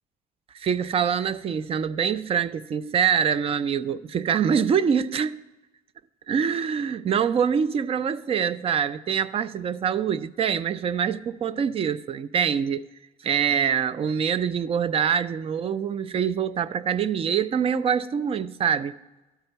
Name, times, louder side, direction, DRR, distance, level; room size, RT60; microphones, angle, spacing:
voice 1, 0.5-5.4 6.3-12.8 13.2-19.0, right 7 dB, 35° right, 0.4 m, -25 dB
12.5 x 4.6 x 6.8 m
cardioid pair, 110°, 17 cm